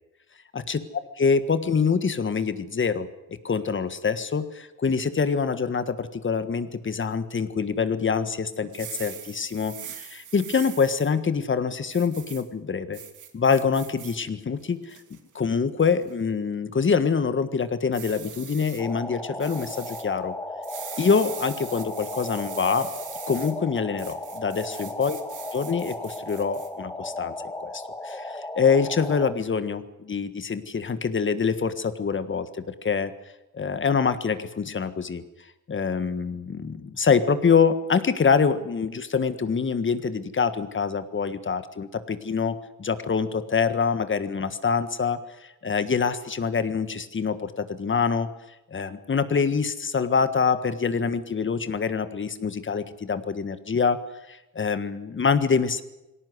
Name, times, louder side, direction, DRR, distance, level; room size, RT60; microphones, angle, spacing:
voice 1, 0.5-13.0 13.3-20.3 21.0-22.9 23.3-25.2 25.5-33.1 33.5-35.2 35.7-48.3 48.7-54.0 54.3-55.8, left 5 dB, 40° left, 12 dB, 1.6 m, -25 dB
sound 1, 8.6-11.1 11.9-12.4 12.9-14.2 14.6-15.2 15.8-16.1 17.9-18.8 19.4-20.0 20.6-23.5 24.0-26.7, right 8 dB, 75° right, 2.9 m, -41 dB
sound 2, 18.8-29.3, left 1 dB, 10° left, 1.5 m, -36 dB
19.5 x 18.0 x 9.5 m, 0.96 s
cardioid pair, 95°, 30 cm